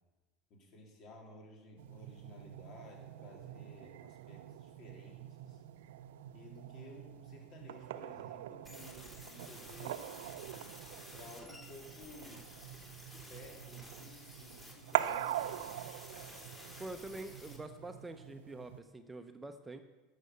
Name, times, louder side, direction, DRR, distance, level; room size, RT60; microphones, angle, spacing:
voice 1, 0.5-5.6 6.3-10.4 11.1-12.4 13.0-15.8, left 2 dB, 50° left, 0 dB, 3.4 m, -55 dB
sound 1, 1.8-18.8, right 12 dB, 80° right, 0.5 m, -43 dB
sound 2, 8.6-17.6, left 1 dB, 15° left, 3.2 m, -53 dB
voice 2, 16.8-19.8, right 2 dB, 15° right, 7 dB, 0.8 m, -46 dB
11.0 x 6.7 x 6.7 m, 1.2 s
hypercardioid pair, 90°, 0 cm